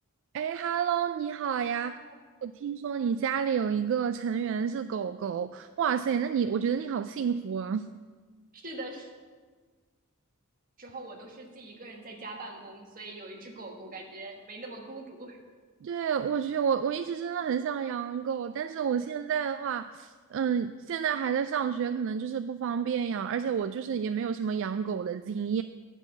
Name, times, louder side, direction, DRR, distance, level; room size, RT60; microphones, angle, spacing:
voice 1, 0.3-2.0 2.4-7.9 15.8-25.6, right 7 dB, 60° right, 10 dB, 0.3 m, -30 dB
voice 2, 1.8-2.2 8.5-9.1 10.8-15.4, right 2 dB, 40° right, 1 dB, 1.5 m, -43 dB
10.0 x 5.4 x 7.3 m, 1.5 s
head